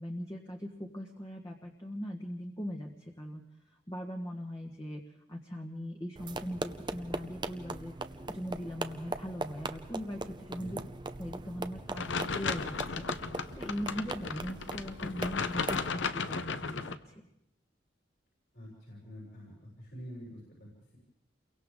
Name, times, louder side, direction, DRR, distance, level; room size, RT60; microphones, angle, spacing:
voice 1, 0.0-3.4 3.9-5.0 5.3-7.9 8.3-10.8 11.2-13.1 13.5-17.2, equal, 20° left, 1 dB, 1.5 m, -40 dB
sound 1, 6.2-15.9, right 2 dB, 25° right, 0.7 m, -40 dB
sound 2, 12.0-17.0, left 4 dB, 85° left, 0.9 m, -35 dB
voice 2, 18.5-21.0, equal, 60° left, -5 dB, 7.7 m, -47 dB
29.5 x 23.0 x 3.8 m, 0.82 s
head